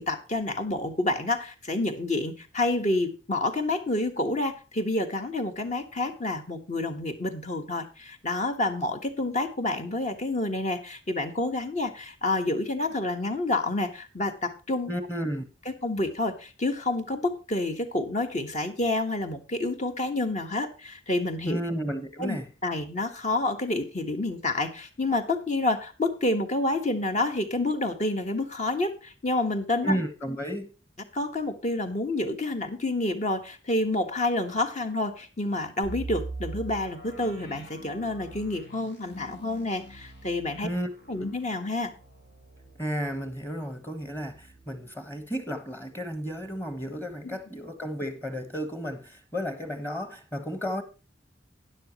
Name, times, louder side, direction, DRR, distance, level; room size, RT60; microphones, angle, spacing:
voice 1, 0.0-14.9 15.8-21.6 22.2-29.9 31.1-40.7 41.1-41.9, left 2 dB, 40° left, 1.5 m, -28 dB
voice 2, 14.9-15.4 21.5-22.5 29.8-30.7 40.6-40.9 41.2-41.3 42.8-50.8, equal, 10° left, 1.3 m, -33 dB
sound 1, 35.8-45.6 45.9-46.0 46.5-46.7, right 2 dB, 85° left, 5.8 m, -43 dB
12.5 x 10.0 x 3.0 m
head